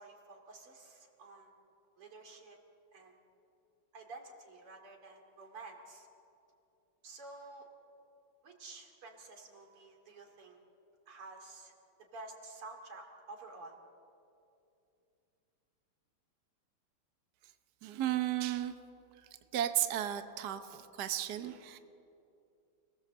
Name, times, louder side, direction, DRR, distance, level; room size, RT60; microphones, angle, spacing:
voice 1, 0.0-1.5 2.0-2.6 2.9-3.2 3.9-6.1 7.0-7.7 8.4-10.6 11.1-11.7 12.1-13.8, right 3 dB, 85° right, 3 dB, 3.6 m, -51 dB
voice 2, 17.8-18.7 19.5-21.8, right 12 dB, 55° right, 8 dB, 1.4 m, -34 dB
29.5 x 19.0 x 7.6 m, 2.7 s
omnidirectional pair, 2.4 m